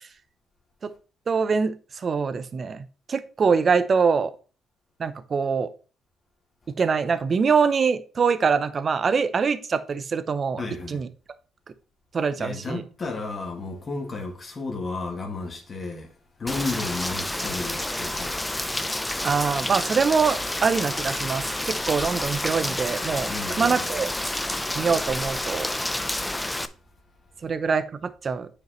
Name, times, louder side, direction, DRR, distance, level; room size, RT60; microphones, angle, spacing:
voice 1, 1.3-4.3 5.0-5.7 6.8-10.6 10.9-11.1 12.1-12.8 19.2-23.3 23.6-24.1 24.7-25.7 27.4-28.5, right 5 dB, 45° right, 0.6 m, -24 dB
voice 2, 10.6-11.0 12.4-16.1 16.4-18.4 23.3-23.8, left 3 dB, 35° left, 1.8 m, -32 dB
Rain, 16.5-26.7, left 1 dB, 10° left, 0.5 m, -29 dB
9.1 x 5.1 x 3.0 m
cardioid pair, 90°, 0 cm